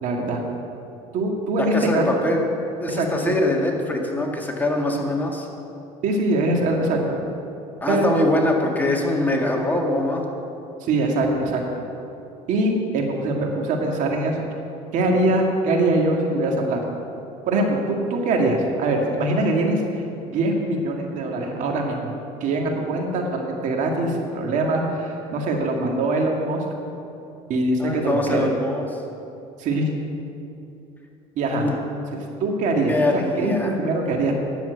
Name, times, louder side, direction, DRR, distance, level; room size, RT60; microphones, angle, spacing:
voice 1, 0.0-0.4 1.1-2.3 2.9-3.4 6.0-7.2 7.9-8.1 10.8-11.8 12.5-14.5 14.9-16.8 17.5-22.1 22.4-26.6 27.5-28.5 29.6-29.9 31.4-31.7 32.1-34.3, right 2 dB, 60° right, 1 dB, 1.9 m, -23 dB
voice 2, 1.7-2.4 2.8-5.5 7.8-10.2 27.8-28.8 31.5-31.8 32.9-33.8, left 1 dB, 10° left, 0 dB, 1.8 m, -23 dB
10.5 x 7.3 x 7.9 m, 2.8 s
supercardioid pair, 95°, 14 cm